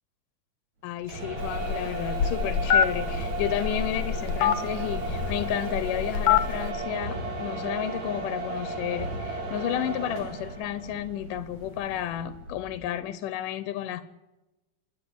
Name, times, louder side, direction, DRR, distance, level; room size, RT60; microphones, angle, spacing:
voice 1, 0.8-14.0, left 11 dB, 85° left, 12 dB, 2.6 m, -32 dB
sound 1, 1.0-12.9, right 2 dB, 60° right, 4.5 m, -35 dB
Telephone, 1.4-6.7, left 8 dB, 65° left, 2.1 m, -26 dB
Wind instrument woodwind instrument, 6.3-11.2, right 2 dB, 80° right, 4.8 m, -46 dB
28.0 x 10.5 x 9.6 m, 1.0 s
omnidirectional pair, 3.7 m